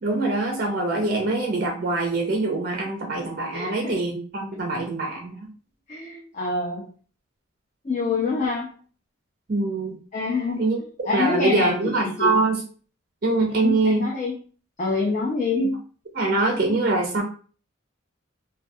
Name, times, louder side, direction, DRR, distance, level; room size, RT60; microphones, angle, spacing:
voice 1, 0.0-5.5 9.5-10.0 10.6-10.8 11.1-12.6 13.2-14.0 15.6-15.8 16.1-17.2, right 2 dB, 45° right, 0 dB, 0.4 m, -24 dB
voice 2, 3.5-3.9 5.9-6.9 7.8-8.7 10.1-10.7 11.0-12.3 13.6-14.3 14.8-15.7, left 3 dB, 35° left, -2 dB, 0.4 m, -26 dB
2.2 x 2.2 x 2.6 m, 0.40 s
head